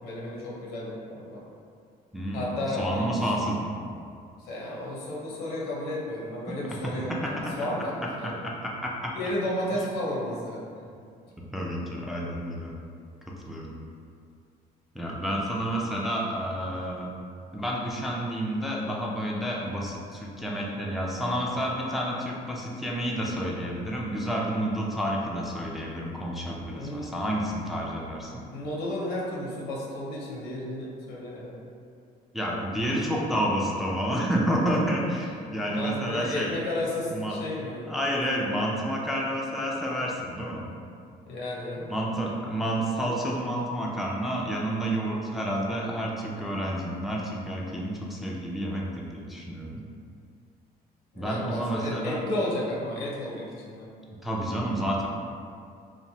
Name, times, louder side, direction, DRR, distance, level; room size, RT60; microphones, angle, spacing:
voice 1, 0.0-1.4 2.3-3.3 4.4-8.4 9.1-10.6 26.7-27.2 28.5-31.6 35.7-37.9 41.2-41.9 51.1-53.9, left 1 dB, 90° left, -4 dB, 0.7 m, -33 dB
voice 2, 2.1-3.8 6.6-9.2 9.7-9.9 11.4-12.8 13.5-13.8 14.9-17.1 17.5-28.4 32.3-36.5 37.1-37.4 37.9-40.7 41.9-49.8 51.2-52.2 54.2-55.1, equal, ahead, -4 dB, 0.3 m, -30 dB
3.0 x 2.1 x 2.7 m, 2.3 s
cardioid pair, 110°, 17 cm